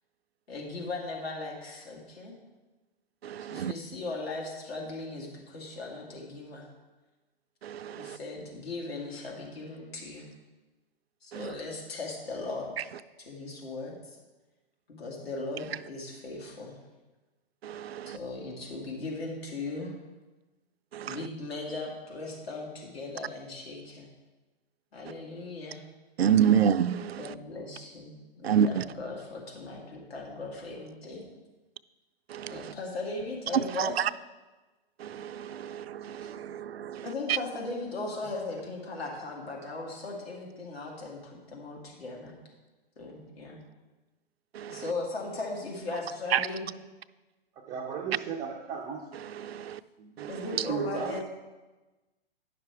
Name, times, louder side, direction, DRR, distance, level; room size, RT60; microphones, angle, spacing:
voice 1, 0.5-2.3 3.5-6.7 8.0-10.3 11.2-12.7 13.2-14.2 14.9-16.8 18.1-19.9 21.0-24.1 24.9-25.8 27.1-31.3 32.5-34.0 36.2-36.3 37.0-42.3 43.0-43.6 44.7-46.7 50.3-51.3, left 3 dB, 80° left, -1 dB, 2.3 m, -38 dB
voice 2, 3.2-3.7 7.6-8.2 11.3-11.5 17.6-18.2 20.9-21.2 26.2-27.3 28.4-28.8 32.3-32.7 33.5-34.1 35.0-37.1 44.5-44.8 46.3-46.5 49.2-49.8 50.2-50.4, right 8 dB, 85° right, 12 dB, 0.5 m, -28 dB
voice 3, 47.7-49.1 50.0-50.3 50.7-51.2, right 6 dB, 15° right, -1 dB, 0.3 m, -36 dB
10.5 x 5.9 x 4.7 m, 1.2 s
hypercardioid pair, 130°, 30 cm